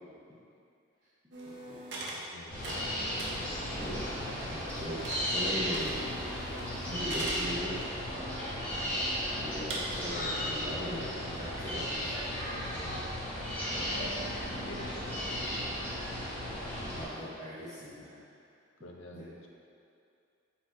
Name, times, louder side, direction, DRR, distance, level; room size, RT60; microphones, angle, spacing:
sound 1, 1.3-2.2 2.5-5.4 5.7-7.5 8.0-8.1 8.7-8.8 9.7-9.8, right 2 dB, 60° right, 0.7 m, -42 dB
voice 1, 2.3-3.6 4.1-4.4 4.6-5.4 12.5-13.2 13.8-14.2 14.6-16.0 18.8-19.5, left 2 dB, 75° left, 1 dB, 0.5 m, -48 dB
sound 2, 2.5-17.0, equal, 10° left, 1.1 m, -35 dB
voice 2, 4.5-6.1 6.9-7.8 8.3-8.4 9.4-12.1 13.7-13.8 15.4-15.5 16.9-18.2 19.1-19.5, equal, 20° right, -14 dB, 0.8 m, -39 dB
4.2 x 2.6 x 4.4 m, 2.5 s
head